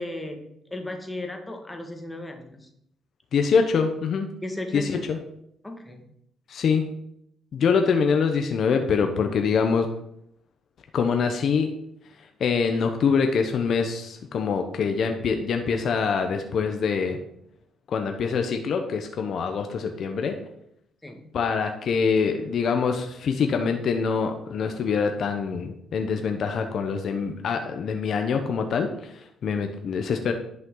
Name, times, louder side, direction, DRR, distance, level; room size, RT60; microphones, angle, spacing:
voice 1, 0.0-2.7 4.4-5.0 5.6-6.0 21.0-21.2, left 1 dB, 10° left, 4 dB, 1.7 m, -35 dB
voice 2, 3.3-4.3 4.7-5.2 6.5-6.9 7.5-9.9 10.9-11.7 12.4-17.2 17.9-20.4 21.3-30.3, left 5 dB, 60° left, 5 dB, 0.9 m, -24 dB
10.5 x 5.8 x 3.9 m, 0.73 s
cardioid pair, 90°, 0 cm